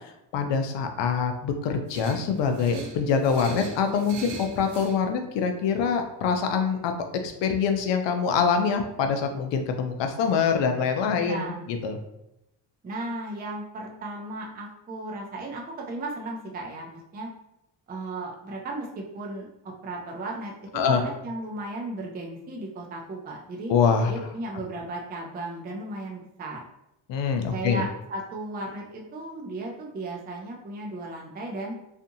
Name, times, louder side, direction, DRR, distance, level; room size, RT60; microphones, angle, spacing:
voice 1, 0.3-6.9 7.2-12.0 20.7-21.0 23.7-24.1 27.1-27.9, left 6 dB, 75° left, 6 dB, 0.6 m, -25 dB
sound 1, 1.9-5.0, right 3 dB, 65° right, 0.6 m, -39 dB
voice 2, 11.2-11.7 12.8-17.3 17.9-23.7 24.1-26.6 27.5-31.7, right 2 dB, 20° right, 0 dB, 0.4 m, -35 dB
2.6 x 2.5 x 2.6 m, 0.85 s
cardioid pair, 105°, 44 cm